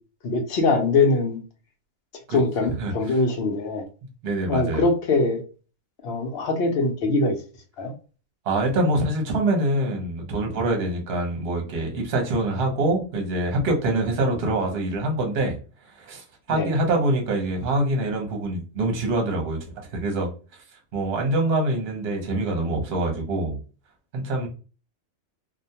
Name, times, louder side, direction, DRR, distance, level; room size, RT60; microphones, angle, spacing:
voice 1, 0.2-1.4 2.3-3.8 4.5-5.4 6.0-7.4 7.8-7.9 16.5-16.7, left 3 dB, 60° left, 0.7 m, -22 dB
voice 2, 4.2-4.8 8.4-15.6 16.0-20.3 20.9-23.6 24.1-24.5, right 2 dB, 55° right, 0.9 m, -25 dB
2.4 x 2.2 x 2.7 m
omnidirectional pair, 1.4 m